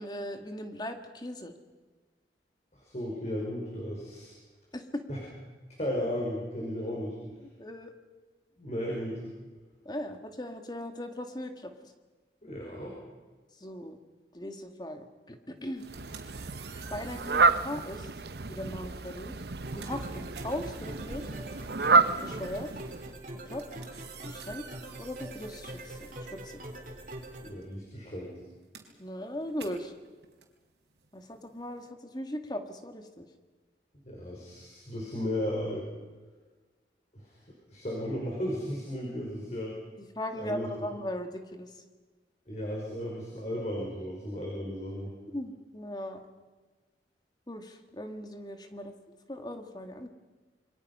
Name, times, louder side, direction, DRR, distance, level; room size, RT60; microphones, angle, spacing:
voice 1, 0.0-1.5 4.7-5.0 7.4-7.9 9.9-11.9 13.6-14.0 14.3-15.8 16.9-18.1 18.5-19.3 19.7-21.3 22.2-22.7 23.5-23.7 24.2-24.6 25.0-26.6 29.0-29.9 31.1-33.3 40.2-41.8 45.3-46.2 47.5-48.9 49.3-50.1, left 1 dB, 25° left, 6 dB, 1.9 m, -38 dB
voice 2, 2.7-4.3 5.1-5.2 5.8-7.4 8.6-9.3 12.4-12.9 27.4-28.3 34.0-35.9 37.1-37.4 37.7-39.7 40.4-40.7 42.5-45.1, equal, 40° left, -2 dB, 5.4 m, -35 dB
sound 1, 15.7-18.0 18.9-19.1 19.4-27.0 27.2-31.9, right 6 dB, 85° right, 3.7 m, -51 dB
Fowl, 15.8-23.2, right 4 dB, 65° right, 0.8 m, -29 dB
sound 2, 19.6-27.5, right 1 dB, 50° right, 3.7 m, -43 dB
27.5 x 24.0 x 5.6 m, 1.3 s
head